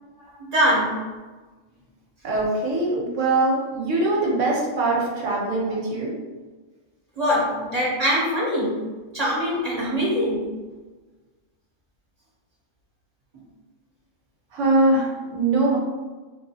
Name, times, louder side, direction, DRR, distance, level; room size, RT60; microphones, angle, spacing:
voice 1, 0.4-1.1 5.7-5.8 7.2-10.6, equal, 35° right, -6 dB, 0.8 m, -23 dB
voice 2, 2.2-6.1 14.5-15.8, right 2 dB, 70° right, -3 dB, 1.1 m, -22 dB
3.3 x 2.4 x 2.7 m, 1.3 s
omnidirectional pair, 1.3 m